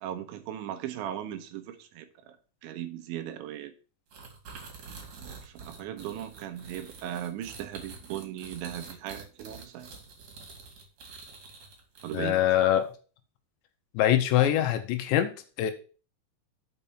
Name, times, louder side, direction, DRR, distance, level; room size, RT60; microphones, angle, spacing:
voice 1, 0.0-2.4 2.6-3.7 4.8-9.9 12.0-12.4, right 11 dB, 80° right, 3.1 m, -38 dB
sound 1, 4.1-12.6, right 4 dB, 50° right, 3.2 m, -47 dB
voice 2, 12.1-12.9 13.9-15.7, left 11 dB, 80° left, 2.8 m, -24 dB
6.8 x 5.4 x 7.1 m
omnidirectional pair, 5.5 m